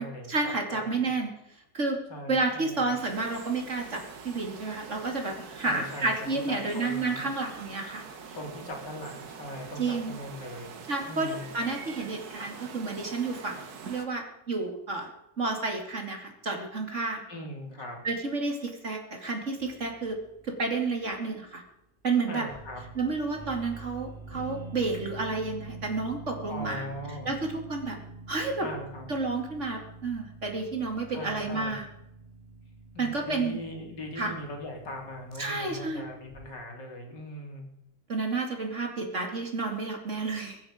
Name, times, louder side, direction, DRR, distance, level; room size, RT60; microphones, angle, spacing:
voice 1, 0.0-1.3 1.7-2.0 2.3-8.4 9.8-10.2 10.9-15.1 15.4-17.2 18.0-20.2 20.4-21.6 22.0-22.5 22.9-26.8 27.2-28.0 28.3-28.7 29.1-31.8 33.0-33.6 34.2-34.3 35.4-36.0 38.1-40.6, right 3 dB, 45° right, 3 dB, 2.9 m, -31 dB
voice 2, 0.7-1.1 2.1-2.9 5.6-7.2 8.3-10.8 11.1-11.5 17.3-18.0 22.3-22.8 26.5-27.3 28.6-29.0 31.1-31.8 32.9-37.6, left 1 dB, 85° left, 1 dB, 3.9 m, -40 dB
sound 1, 2.9-14.1, right 5 dB, 60° right, 1.9 m, -45 dB
sound 2, 19.6-21.2 22.5-36.5, right 3 dB, 10° left, 4.3 m, -46 dB
23.5 x 9.8 x 5.1 m, 0.84 s
omnidirectional pair, 1.8 m